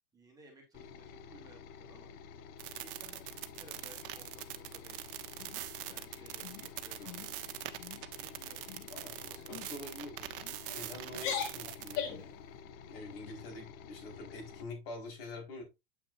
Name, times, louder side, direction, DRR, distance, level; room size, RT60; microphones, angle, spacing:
voice 1, 0.1-2.5 2.8-5.3 5.9-8.7 9.0-9.7, right 2 dB, 10° right, 1 dB, 2.1 m, -59 dB
sound 1, 0.7-14.6, left 6 dB, 30° left, 0.5 m, -51 dB
sound 2, 2.6-12.0, right 16 dB, 65° right, 0.9 m, -43 dB
sound 3, 5.4-6.0 6.4-6.7 7.0-7.3 7.7-8.0 8.7-9.0 9.5-9.7 10.4-10.8 11.1-12.3, left 8 dB, 50° left, 1.5 m, -40 dB
voice 2, 8.9-10.3 10.6-12.3 12.9-15.6, left 2 dB, 75° left, 0 dB, 4.5 m, -46 dB
8.3 x 5.7 x 2.5 m, 0.23 s
supercardioid pair, 145°, 29 cm